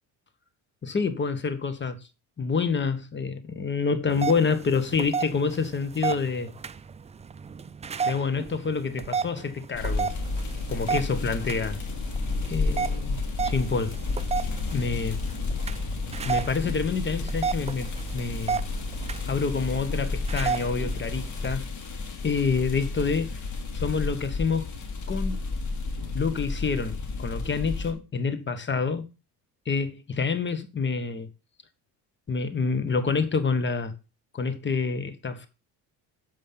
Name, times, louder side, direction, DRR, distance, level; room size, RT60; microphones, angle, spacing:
voice 1, 0.8-2.0 2.4-6.5 8.1-10.1 10.7-11.8 12.5-13.2 13.4-14.0 14.7-15.2 16.2-18.6 19.3-21.6 22.2-23.4 23.7-24.7 25.1-25.4 26.1-29.1 29.7-31.3 32.3-33.9 34.3-35.5, left 5 dB, 25° left, 1.3 m, -27 dB
sound 1, 4.1-21.6, right 6 dB, 15° right, 0.3 m, -34 dB
sound 2, 9.7-27.9, left 3 dB, 45° left, 2.7 m, -31 dB
7.4 x 5.3 x 5.7 m
cardioid pair, 100°, 41 cm